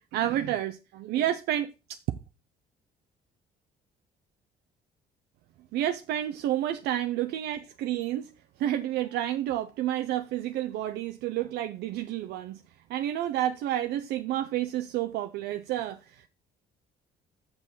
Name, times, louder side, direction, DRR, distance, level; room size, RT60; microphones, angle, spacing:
voice 1, 0.0-2.0 5.7-8.3 8.6-12.6 12.9-16.3, right 12 dB, 80° right, 0.6 m, -30 dB
6.7 x 6.0 x 5.4 m
cardioid pair, 110°, 17 cm